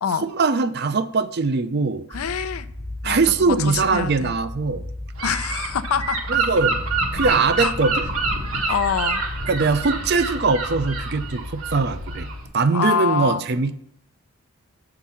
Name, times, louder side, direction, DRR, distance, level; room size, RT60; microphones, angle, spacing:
voice 1, 0.2-2.0 3.0-4.8 6.3-6.8 7.1-8.1 9.5-12.3 12.5-13.7, right 4 dB, 45° right, 12 dB, 0.5 m, -21 dB
voice 2, 2.1-2.7 3.0-4.3 5.2-6.2 7.6-7.7 8.7-9.2 12.7-13.4, left 7 dB, 80° left, 12 dB, 0.5 m, -25 dB
sound 1, 2.1-12.4, left 1 dB, 10° left, 0.8 m, -35 dB
Gull seagull / Wind, 5.2-12.5, right 4 dB, 75° right, 1.3 m, -27 dB
7.4 x 3.9 x 5.7 m, 0.73 s
head